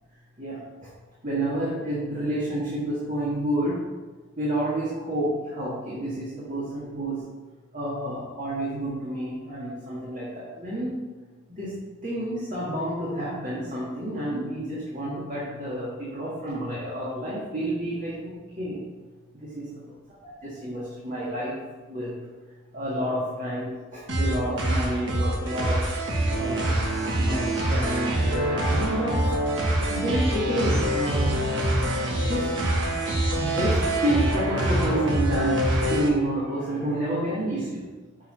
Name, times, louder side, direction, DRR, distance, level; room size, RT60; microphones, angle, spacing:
voice 1, 1.2-3.8 4.4-7.2 7.7-11.0 11.5-11.8 12.0-18.8 19.3-19.7 20.2-21.6 21.9-22.1 22.7-25.8 26.3-26.6 27.2-29.3 29.9-31.3 32.3-32.5 33.3-37.9, right 1 dB, 40° right, -7 dB, 1.6 m, -29 dB
sound 1, 24.1-36.1, right 1 dB, 60° right, 1.3 m, -25 dB
6.8 x 4.6 x 5.5 m, 1.3 s
head